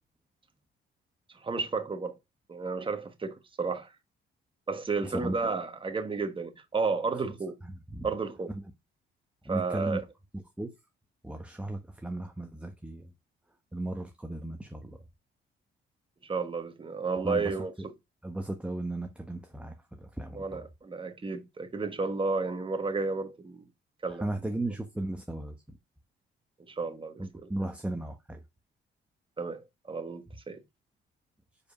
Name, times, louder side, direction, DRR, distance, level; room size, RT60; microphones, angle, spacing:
voice 1, 1.4-2.2 2.5-3.9 4.7-7.6 8.0-8.5 9.5-10.0 16.2-17.7 20.3-23.6 24.0-24.3 26.7-27.5 29.4-30.6, right 4 dB, 25° right, 1.3 m, -32 dB
voice 2, 5.0-5.4 7.6-8.1 8.5-8.6 9.4-10.0 10.3-10.7 11.2-13.1 13.7-15.0 17.2-17.5 18.2-20.7 24.2-25.6 27.2-28.4, right 1 dB, 5° right, 1.1 m, -36 dB
5.1 x 4.9 x 5.4 m
cardioid pair, 90°, 20 cm